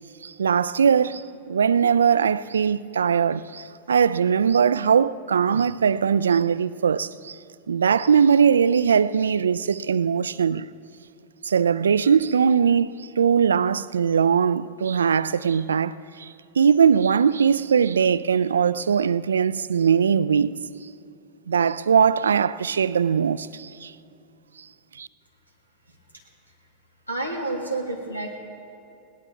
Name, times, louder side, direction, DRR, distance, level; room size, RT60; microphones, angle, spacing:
voice 1, 0.2-7.4 7.7-10.7 11.4-20.6 21.5-23.9 25.0-25.1, right 7 dB, 70° right, 0.3 m, -20 dB
voice 2, 27.1-28.4, right 2 dB, 90° left, 2.0 m, -29 dB
20.5 x 18.0 x 3.6 m
figure-of-eight pair, 90°, 0 cm